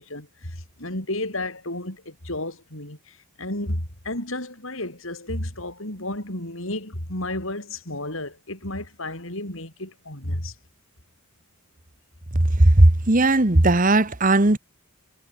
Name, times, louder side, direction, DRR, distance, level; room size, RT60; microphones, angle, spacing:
voice 1, 0.0-10.5, left 1 dB, 60° left, 6.2 m, -32 dB
voice 2, 12.3-14.6, right 2 dB, 35° right, 1.4 m, -17 dB
head